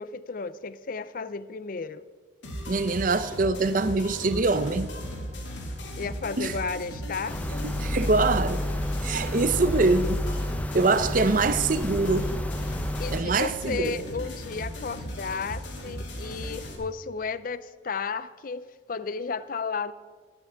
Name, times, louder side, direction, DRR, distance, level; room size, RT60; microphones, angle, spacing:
voice 1, 0.0-2.0 6.0-7.7 13.0-19.9, left 4 dB, 45° left, 0.5 m, -33 dB
sound 1, 2.4-16.7, equal, 70° left, 2.7 m, -37 dB
voice 2, 2.7-4.9 6.4-6.5 7.8-8.6 9.0-10.2 10.7-12.3 13.1-14.0, right 3 dB, 45° right, 0.6 m, -24 dB
sound 2, 7.3-13.2, left 1 dB, 10° left, 0.8 m, -30 dB
13.0 x 8.3 x 7.9 m
head